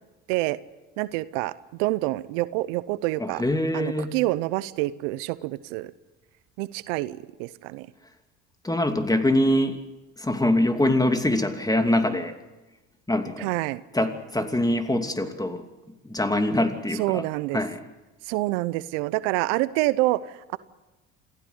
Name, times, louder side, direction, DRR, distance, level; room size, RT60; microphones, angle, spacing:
voice 1, 1.0-1.5 1.8-3.4 3.7-5.9 6.6-7.9 13.4-13.8 16.9-17.6 18.2-20.6, right 19 dB, 75° right, 17 dB, 0.8 m, -27 dB
voice 2, 3.2-4.1 8.6-9.8 10.2-12.3 13.1-13.5 13.9-15.6 16.0-17.2 17.5-17.8, left 1 dB, 10° left, 7 dB, 2.8 m, -24 dB
27.0 x 16.0 x 8.1 m, 1.1 s
hypercardioid pair, 65°, 37 cm